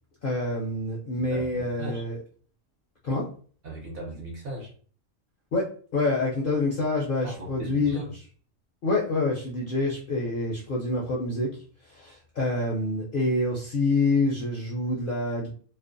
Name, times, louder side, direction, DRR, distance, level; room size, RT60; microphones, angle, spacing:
voice 1, 0.2-2.2 3.0-3.3 5.5-8.0 8.8-11.5 11.8-15.5, left 2 dB, 55° left, -3 dB, 0.6 m, -27 dB
voice 2, 1.3-2.0 3.6-4.7 7.2-8.1, right 1 dB, 60° right, -2 dB, 0.8 m, -37 dB
2.4 x 2.0 x 2.5 m, 0.43 s
omnidirectional pair, 1.3 m